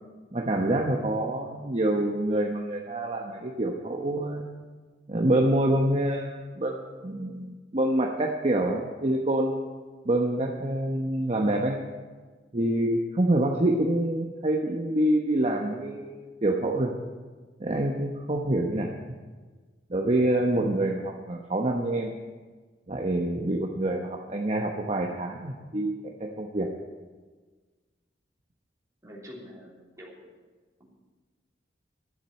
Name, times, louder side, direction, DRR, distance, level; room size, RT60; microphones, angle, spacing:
voice 1, 0.3-4.5 5.1-9.6 10.0-11.8 12.5-16.9 17.6-18.9 19.9-22.1 22.9-26.7, right 1 dB, 35° right, 1 dB, 1.0 m, -26 dB
voice 2, 29.0-30.3 30.8-30.9, equal, 20° right, -4 dB, 3.1 m, -46 dB
11.5 x 7.5 x 9.7 m, 1.4 s
head